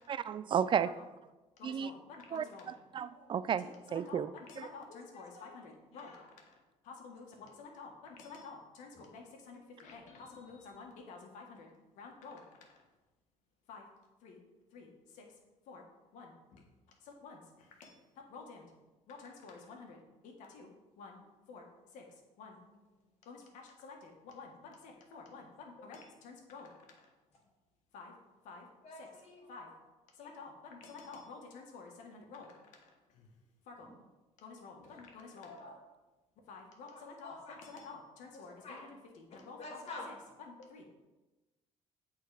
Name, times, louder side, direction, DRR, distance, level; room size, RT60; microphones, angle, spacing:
voice 1, 0.1-0.9 1.6-1.9 2.3-3.6 3.9-4.3 4.6-4.7, right 8 dB, 40° right, 15 dB, 0.4 m, -33 dB
voice 2, 1.6-2.7 3.6-6.6 6.8-11.7 11.9-12.8 13.7-13.9 14.2-14.4 14.7-15.2 15.7-15.8 16.1-16.6 17.0-18.0 18.3-18.7 19.1-20.0 20.2-20.7 21.0-21.2 21.5-21.7 21.9-22.0 22.4-22.6 23.2-27.1 27.9-28.1 28.4-28.7 29.0-29.1 29.5-29.7 30.1-33.3 33.7-33.9 34.4-35.5 36.5-37.4 37.6-38.5 38.8-39.6 40.1-40.2 40.5-40.9, left 4 dB, 80° left, 1 dB, 1.5 m, -51 dB
voice 3, 3.0-3.4 4.9-6.3 7.4-7.5 8.9-9.1 22.6-22.8 28.8-29.8 30.2-30.3 32.1-32.2 33.8-33.9 35.3-35.7 36.9-37.8 38.3-38.9 39.3-40.1, left 2 dB, 55° left, -1 dB, 2.5 m, -50 dB
8.1 x 4.0 x 4.9 m, 1.1 s
cardioid pair, 95°, 13 cm